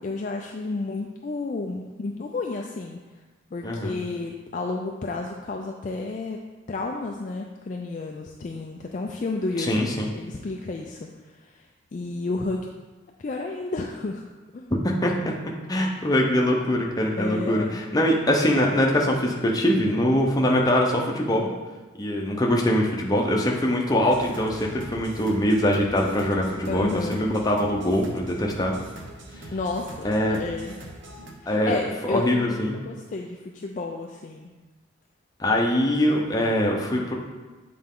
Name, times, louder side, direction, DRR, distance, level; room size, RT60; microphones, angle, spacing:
voice 1, 0.0-3.0 3.5-6.4 6.7-9.7 10.1-11.1 11.4-11.6 11.9-12.7 13.2-14.2 14.5-14.7 17.1-17.8 26.7-27.2 29.5-30.8 31.4-34.5 36.0-36.2, left 3 dB, 40° left, 1 dB, 0.3 m, -31 dB
voice 2, 3.6-4.0 9.6-10.1 14.7-15.3 15.7-21.5 22.0-28.8 30.0-30.4 31.5-32.8 35.4-37.1, left 1 dB, 20° left, -1 dB, 0.7 m, -23 dB
sound 1, 24.0-31.3, right 1 dB, 65° right, 0.8 m, -42 dB
7.8 x 4.2 x 3.7 m, 1.2 s
head